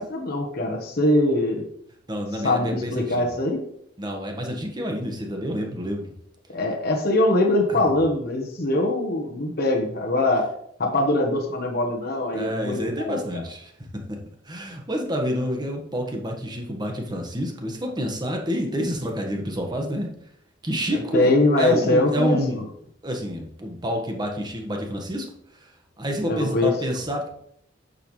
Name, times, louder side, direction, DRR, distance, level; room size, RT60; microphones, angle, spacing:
voice 1, 0.0-1.6 2.4-3.6 6.5-10.4 10.8-13.2 20.9-22.4 26.3-26.7, left 1 dB, 55° left, 2 dB, 1.2 m, -22 dB
voice 2, 2.1-3.3 4.0-6.1 7.7-7.9 12.3-13.7 14.1-14.2 14.4-20.1 20.6-22.6 23.0-25.3 25.5-25.7 26.0-27.3, equal, 25° right, 2 dB, 1.5 m, -28 dB
8.9 x 6.8 x 3.2 m, 0.69 s
head